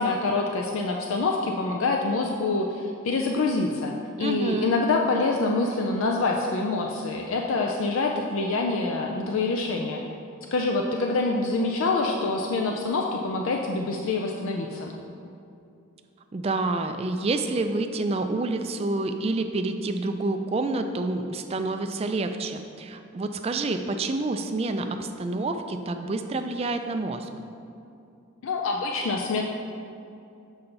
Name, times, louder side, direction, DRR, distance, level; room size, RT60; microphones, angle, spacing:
voice 1, 0.0-10.0 10.5-14.9 28.4-29.4, left 3 dB, 70° left, 1 dB, 0.4 m, -26 dB
voice 2, 4.2-4.8 16.3-27.3, right 2 dB, 30° right, 7 dB, 0.3 m, -28 dB
7.0 x 5.6 x 3.9 m, 2.6 s
head